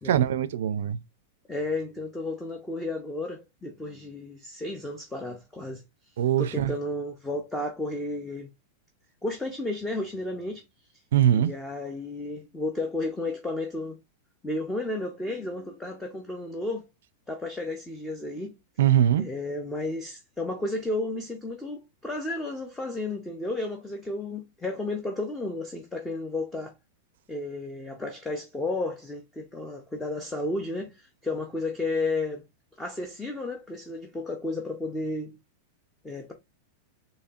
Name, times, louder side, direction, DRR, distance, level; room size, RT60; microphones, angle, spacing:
voice 1, 0.0-1.0 6.2-6.7 11.1-11.5 18.8-19.2, right 10 dB, 75° right, 0.4 m, -22 dB
voice 2, 1.5-5.8 6.4-8.5 9.2-10.6 11.3-14.0 14.4-16.9 17.3-18.5 19.2-26.7 27.3-32.4 32.8-35.4 36.0-36.3, left 2 dB, 5° left, 0.6 m, -32 dB
4.3 x 2.8 x 2.3 m
supercardioid pair, 155°, 0 cm